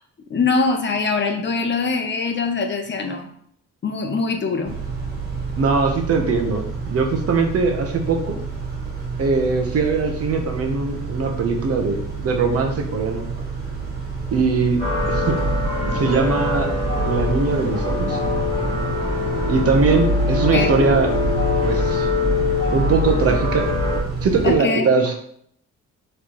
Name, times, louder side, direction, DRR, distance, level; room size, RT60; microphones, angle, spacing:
voice 1, 0.3-3.3 3.8-4.7 20.5-20.7 24.4-24.9, left 4 dB, 35° left, 5 dB, 0.7 m, -22 dB
Car / Idling / Accelerating revving vroom, 4.6-24.6, right 4 dB, 35° right, 1.7 m, -30 dB
voice 2, 5.6-8.4 9.2-12.0 12.2-13.2 14.3-14.8 15.1-15.4 15.8-16.7 17.0-18.2 19.5-21.1 21.7-22.1 22.7-23.6 24.2-25.1, right 4 dB, 50° right, 3 dB, 0.9 m, -21 dB
sound 1, 14.8-24.0, left 2 dB, 20° left, 1.4 m, -22 dB
4.3 x 3.2 x 3.0 m, 0.66 s
cardioid pair, 90°, 30 cm